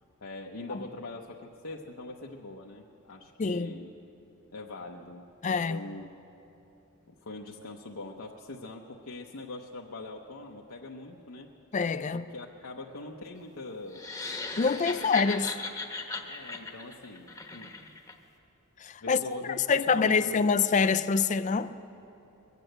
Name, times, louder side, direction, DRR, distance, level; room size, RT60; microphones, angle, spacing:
voice 1, 0.2-3.9 4.5-6.1 7.1-11.5 12.1-14.1 14.6-15.2 16.3-17.7 19.0-20.5, left 2 dB, 75° left, 0.8 m, -43 dB
voice 2, 3.4-3.7 5.4-5.8 11.7-12.3 14.6-15.5 18.8-19.2 19.7-21.7, left 5 dB, 35° left, 0.4 m, -25 dB
sound 1, 13.9-18.1, left 3 dB, 15° left, 1.0 m, -37 dB
22.0 x 8.4 x 7.9 m
head